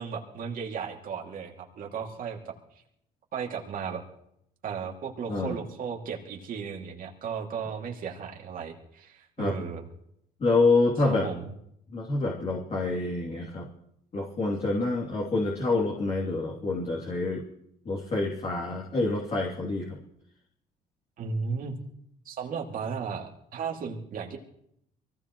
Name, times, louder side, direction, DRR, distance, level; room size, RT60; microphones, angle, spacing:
voice 1, 0.0-2.8 3.3-4.0 4.6-9.9 11.0-11.5 21.2-21.7 22.2-24.4, right 6 dB, 55° right, 0 dB, 2.5 m, -35 dB
voice 2, 10.4-11.3 11.9-13.7 14.1-17.4 17.8-20.0, left 3 dB, 40° left, -2 dB, 2.8 m, -27 dB
23.5 x 16.0 x 3.1 m, 0.74 s
cardioid pair, 110°, 17 cm